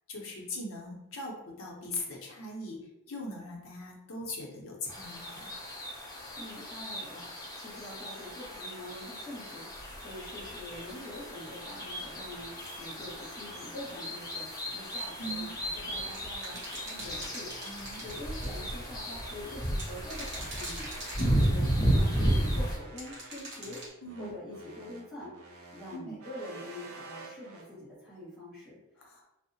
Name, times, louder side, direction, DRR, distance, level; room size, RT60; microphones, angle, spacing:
voice 1, 0.1-2.8 3.1-5.5 15.2-15.6 17.6-18.0 21.2-21.4 24.0-24.3 25.9-26.2 29.0-29.2, left 1 dB, 65° left, -1 dB, 0.7 m, -40 dB
sound 1, 4.9-22.8, equal, 15° left, 0.5 m, -34 dB
voice 2, 6.4-12.5 12.8-14.5 14.7-20.9 21.2-23.9 24.2-25.3 25.7-29.2, left 1 dB, 5° right, -13 dB, 1.3 m, -45 dB
sound 2, 10.4-27.7, right 3 dB, 70° right, 0.5 m, -51 dB
sound 3, 14.8-15.3 16.1-18.6 19.7-21.8 23.0-23.9, right 1 dB, 50° right, 0.9 m, -43 dB
2.7 x 2.0 x 2.7 m, 0.90 s
head